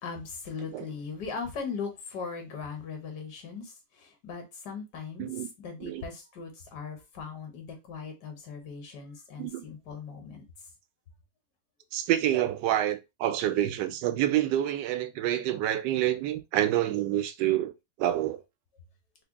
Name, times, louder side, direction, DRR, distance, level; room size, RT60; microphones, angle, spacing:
voice 1, 0.0-10.4, left 5 dB, 75° left, 1.5 m, -39 dB
voice 2, 11.9-17.7 18.0-18.4, right 12 dB, 90° right, 1.2 m, -27 dB
3.4 x 2.2 x 3.5 m
omnidirectional pair, 1.8 m